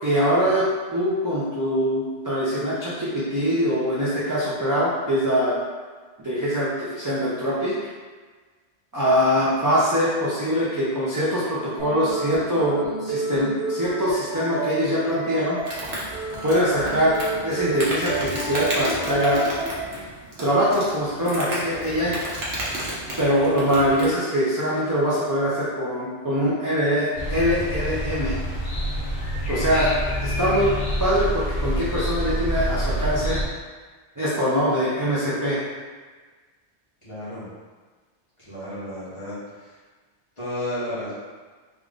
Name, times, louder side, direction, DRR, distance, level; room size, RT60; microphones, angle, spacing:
voice 1, 0.0-0.7 0.9-5.6 6.2-7.8 8.9-15.6 16.4-17.2 17.4-19.5 20.4-22.1 23.2-28.4 29.5-30.7 31.0-33.4 34.2-35.6, equal, 25° right, -10 dB, 0.5 m, -23 dB
sound 1, 11.8-19.8, right 3 dB, 85° right, 1.3 m, -30 dB
Insect, 15.7-24.2, right 1 dB, 65° right, 1.1 m, -33 dB
sound 2, 27.2-33.4, equal, 50° left, 0.8 m, -27 dB
voice 2, 37.0-37.5 38.4-39.8 40.4-41.1, left 1 dB, 30° left, -12 dB, 1.4 m, -32 dB
3.6 x 2.5 x 3.6 m, 1.4 s
omnidirectional pair, 1.2 m